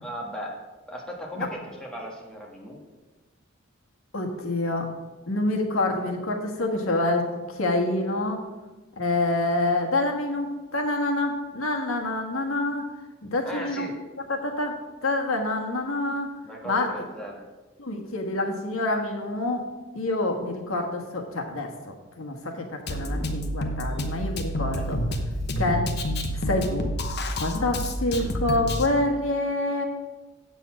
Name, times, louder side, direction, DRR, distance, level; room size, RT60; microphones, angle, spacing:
voice 1, 0.0-0.5 0.9-2.8 13.4-13.9 16.4-17.4 24.7-24.8, equal, 5° left, -2 dB, 1.6 m, -37 dB
voice 2, 4.1-4.9 5.3-8.4 9.0-12.8 13.2-13.9 14.3-14.7 15.0-16.3 16.6-16.9 17.8-19.7 19.9-25.0 25.6-25.9 26.3-29.8, left 2 dB, 85° left, 2 dB, 1.4 m, -27 dB
Drum kit, 22.9-28.9, equal, 55° left, 1.0 m, -29 dB
8.2 x 6.9 x 6.2 m, 1.2 s
head